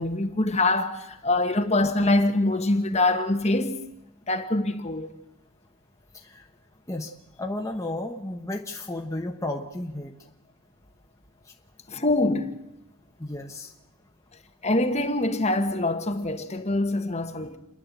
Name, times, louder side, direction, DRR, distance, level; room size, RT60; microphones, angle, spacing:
voice 1, 0.0-3.8 4.3-5.1 11.9-12.6 14.6-17.6, left 2 dB, 30° left, 1.4 m, -24 dB
voice 2, 6.1-6.5 6.9-7.1 7.4-10.1 11.4-11.5 13.2-13.7, left 1 dB, 15° left, 1.2 m, -33 dB
29.0 x 11.0 x 8.4 m
head